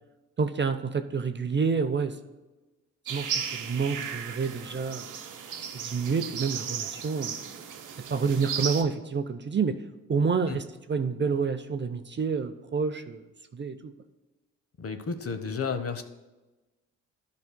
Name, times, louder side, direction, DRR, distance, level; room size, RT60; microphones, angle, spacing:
voice 1, 0.4-2.2 3.1-5.1 5.7-7.3 8.1-9.8 10.1-13.2 13.5-13.9, right 5 dB, 30° right, 8 dB, 0.7 m, -28 dB
sound 1, 3.1-8.8, right 7 dB, 50° right, 1.0 m, -35 dB
voice 2, 14.8-16.0, left 5 dB, 35° left, 9 dB, 1.0 m, -32 dB
14.5 x 5.2 x 2.2 m, 1.1 s
hypercardioid pair, 40°, 39 cm